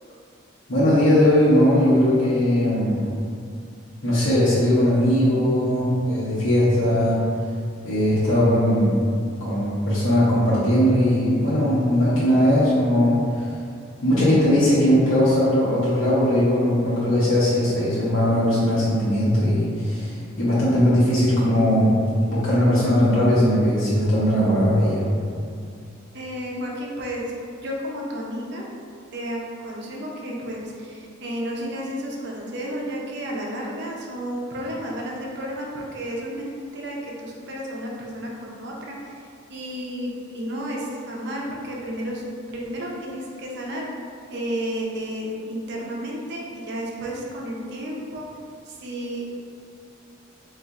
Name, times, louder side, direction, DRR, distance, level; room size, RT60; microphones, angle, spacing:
voice 1, 0.7-3.1 4.0-7.2 7.8-9.0 9.4-13.5 14.0-25.0, equal, 85° left, -10 dB, 0.8 m, -19 dB
voice 2, 26.1-28.7 29.1-39.2 39.5-42.2 42.5-43.9 44.3-48.2 48.7-49.3, equal, 55° right, -2 dB, 0.5 m, -32 dB
4.0 x 2.4 x 2.4 m, 2.3 s
head